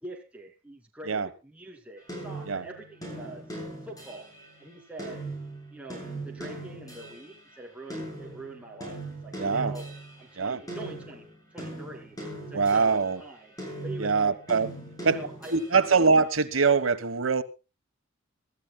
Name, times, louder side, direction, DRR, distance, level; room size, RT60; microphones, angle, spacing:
voice 1, 0.0-3.4 3.8-4.2 4.6-5.2 5.7-9.9 10.2-11.2 11.5-12.1 12.5-13.5 13.8-14.4 15.0-15.6 15.9-16.0, right 2 dB, 5° right, 2.6 m, -44 dB
sound 1, 2.1-7.4 7.9-13.2 13.6-16.0, right 2 dB, 20° left, 7.4 m, -40 dB
voice 2, 9.4-9.7 10.4-10.6 12.5-13.2 14.0-14.7 15.0-15.2 15.5-17.4, right 4 dB, 80° right, 1.3 m, -23 dB
25.0 x 13.5 x 2.3 m
head